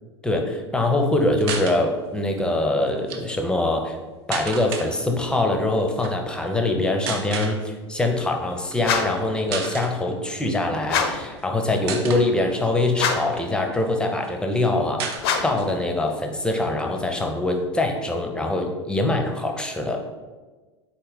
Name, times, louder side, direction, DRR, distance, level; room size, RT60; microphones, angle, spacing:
voice 1, 0.2-4.0 4.3-15.1 15.4-20.0, left 2 dB, 5° left, 3 dB, 0.5 m, -23 dB
sound 1, 1.4-1.8 2.9-3.2 4.3-4.9 5.9-6.1 7.1-7.6 8.6-8.8 9.1-9.2 9.5-9.9 10.8-11.4 11.9-12.3 12.9-13.9 14.2-14.3 14.5-14.6 15.0-15.7 16.1-16.2 16.5-17.5, right 5 dB, 55° right, 0.6 m, -32 dB
sound 2, 8.8-9.3 10.8-11.3 12.9-13.4 15.2-15.7, left 6 dB, 55° left, 0.5 m, -25 dB
4.0 x 3.2 x 3.9 m, 1.3 s
figure-of-eight pair, 80°, 15 cm